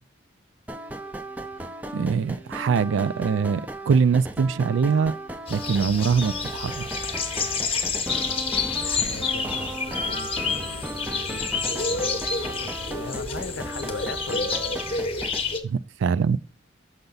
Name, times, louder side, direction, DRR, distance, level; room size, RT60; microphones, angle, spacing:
sound 1, 0.7-15.4, right 1 dB, 10° right, 0.4 m, -36 dB
voice 1, 1.9-5.1 5.5-6.9 15.6-16.4, right 6 dB, 75° right, 0.3 m, -23 dB
sound 2, 5.5-15.6, left 4 dB, 30° left, 0.8 m, -28 dB
voice 2, 7.9-8.5 8.8-14.5, left 4 dB, 70° left, 0.7 m, -40 dB
6.7 x 5.7 x 4.0 m
head